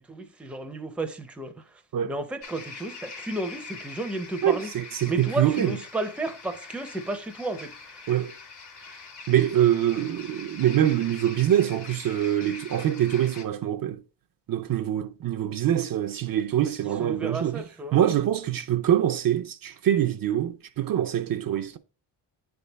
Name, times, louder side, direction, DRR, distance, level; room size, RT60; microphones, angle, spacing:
voice 1, 0.0-1.5 2.1-4.7 5.1-7.7 17.0-18.0, right 2 dB, 5° right, 0.5 m, -32 dB
sound 1, 2.4-13.5, left 4 dB, 65° left, 1.8 m, -43 dB
voice 2, 4.4-5.8 8.1-8.3 9.3-14.0 14.5-17.6 17.9-21.8, right 11 dB, 50° right, 0.5 m, -24 dB
9.0 x 3.4 x 3.9 m
wide cardioid pair, 145°, 44 cm